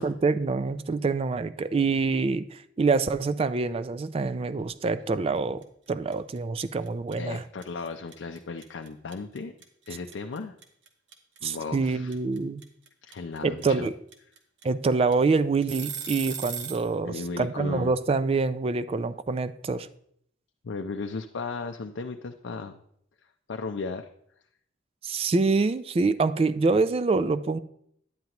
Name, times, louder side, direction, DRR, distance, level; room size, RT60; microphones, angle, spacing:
voice 1, 0.0-7.4 11.4-12.6 13.4-13.9 14.6-19.9 25.0-27.6, right 4 dB, 30° right, 13 dB, 0.3 m, -26 dB
sound 1, 5.6-5.9 6.1-16.9, right 8 dB, 75° right, 1.1 m, -38 dB
voice 2, 7.2-9.5 9.9-10.6 11.4-12.1 13.0-13.9 17.0-17.9 20.6-22.8 23.2-24.1, left 4 dB, 80° left, 4 dB, 0.5 m, -36 dB
10.5 x 9.3 x 2.9 m, 0.69 s
head